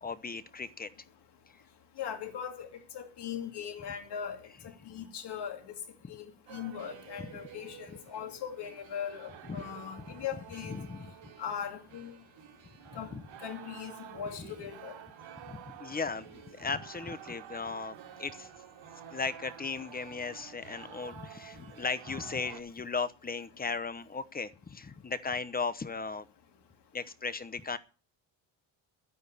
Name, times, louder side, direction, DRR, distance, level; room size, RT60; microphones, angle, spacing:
voice 1, 0.0-0.9 7.2-7.3 10.1-10.2 10.6-11.1 12.9-13.2 14.4-14.5 15.5-18.5 19.1-26.3 26.9-27.8, left 4 dB, 20° left, 0.9 m, -37 dB
voice 2, 2.0-2.7 2.9-4.4 4.6-5.8 6.1-10.8 11.4-12.2 12.9-13.1 13.4-14.9, left 8 dB, 60° left, 2.6 m, -39 dB
sound 1, 6.5-22.6, right 9 dB, 80° right, 3.3 m, -50 dB
12.5 x 9.6 x 6.8 m
cardioid pair, 140°, 46 cm